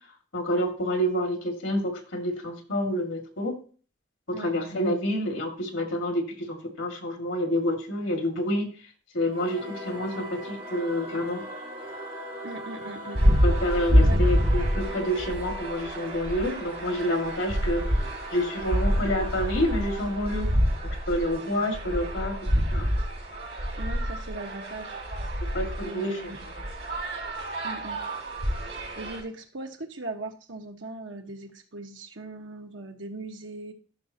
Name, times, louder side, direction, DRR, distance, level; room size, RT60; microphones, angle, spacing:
voice 1, 0.3-3.6 4.3-8.7 9.1-11.4 13.4-17.8 18.3-20.5 21.1-22.4 22.7-22.9 25.5-26.2, equal, 90° left, 3 dB, 2.2 m, -28 dB
Singing / Musical instrument, 9.3-22.2, right 1 dB, 35° right, 4.3 m, -40 dB
voice 2, 12.4-13.2 14.0-14.2 23.7-25.0 25.8-26.4 27.6-28.0 28.9-33.7, right 2 dB, 85° right, 4 dB, 1.4 m, -39 dB
sound 1, 13.1-29.2, equal, 70° right, 3.5 m, -27 dB
13.5 x 6.2 x 2.9 m, 0.39 s
head